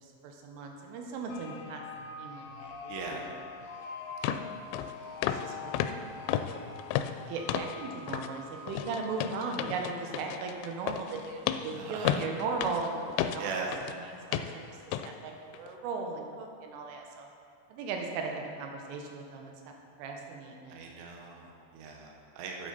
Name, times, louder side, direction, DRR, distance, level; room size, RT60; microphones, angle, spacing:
voice 1, 0.0-1.8 2.2-3.2 5.3-6.0 6.3-6.8 7.3-13.7 14.3-17.3 17.7-19.7 20.0-20.8, right 4 dB, 85° right, 2 dB, 3.5 m, -38 dB
sound 1, 1.3-11.0, left 4 dB, 60° left, 2.5 m, -45 dB
voice 2, 2.9-3.2 11.7-12.1 13.4-13.7 20.7-22.7, right 4 dB, 70° right, 0 dB, 3.1 m, -39 dB
sound 2, 3.6-3.7 4.2-4.5 4.7-4.9 5.2-5.5 5.7-7.8 8.1-8.3 8.7-14.0 14.3-14.6 14.9-15.1 15.5-15.7, left 10 dB, 85° left, 2.9 m, -33 dB
13.0 x 8.7 x 4.0 m, 2.3 s
omnidirectional pair, 5.5 m